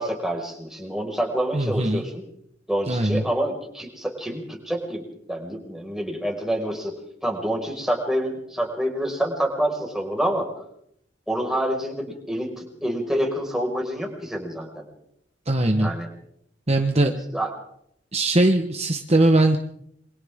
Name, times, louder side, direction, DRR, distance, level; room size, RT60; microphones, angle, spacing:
voice 1, 0.0-2.2 2.7-5.0 5.3-6.9 7.2-10.5 11.3-14.8 15.8-16.1 17.3-17.5, right 1 dB, 5° right, 0 dB, 5.5 m, -27 dB
voice 2, 1.5-2.0 2.9-3.2 15.5-15.9 16.7-17.1 18.1-19.6, right 1 dB, 35° right, 4 dB, 1.3 m, -20 dB
28.0 x 25.5 x 3.7 m, 0.72 s
head